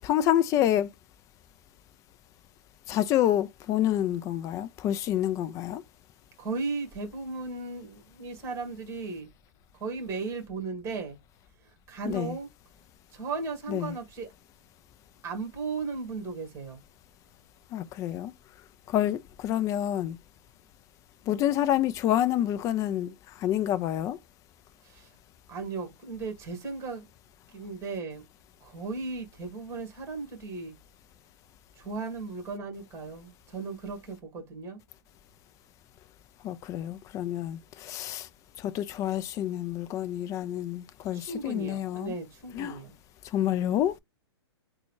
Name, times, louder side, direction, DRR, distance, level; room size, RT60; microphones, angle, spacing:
voice 1, 0.0-0.9 2.9-5.8 12.1-12.4 13.7-14.0 17.7-18.3 18.9-20.2 21.3-24.2 36.4-38.3 38.6-42.1 42.5-42.8 43.3-44.0, left 11 dB, 20° left, 0.4 m, -28 dB
voice 2, 6.4-9.3 9.8-11.2 11.6-12.5 13.1-14.3 15.2-16.8 24.8-25.1 25.5-27.1 27.5-28.2 28.6-30.7 31.8-34.8 41.1-43.0, right 4 dB, 20° right, 1.7 m, -36 dB
3.7 x 2.3 x 3.1 m
hypercardioid pair, 130°, 14 cm